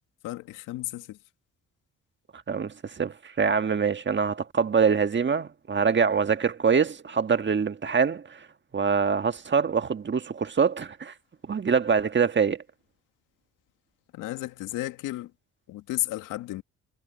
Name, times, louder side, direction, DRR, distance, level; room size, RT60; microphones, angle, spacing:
voice 1, 0.2-1.2 14.1-15.3 15.7-16.6, left 16 dB, 85° left, 2.0 m, -33 dB
voice 2, 2.5-8.4 8.7-11.1 11.5-12.6, right 6 dB, 35° right, 1.6 m, -24 dB
supercardioid pair, 70°, 31 cm